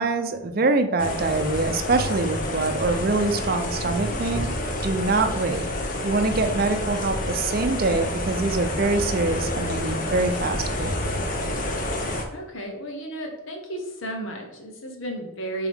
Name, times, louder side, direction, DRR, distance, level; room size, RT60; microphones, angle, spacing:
voice 1, 0.0-4.5 4.8-5.6 6.0-11.1, right 3 dB, 45° right, 7 dB, 0.5 m, -24 dB
sound 1, 1.0-12.2, left 1 dB, 40° left, 0.8 m, -28 dB
voice 2, 12.3-15.7, right 1 dB, 70° left, 2 dB, 1.2 m, -33 dB
7.1 x 3.8 x 3.6 m, 0.92 s
head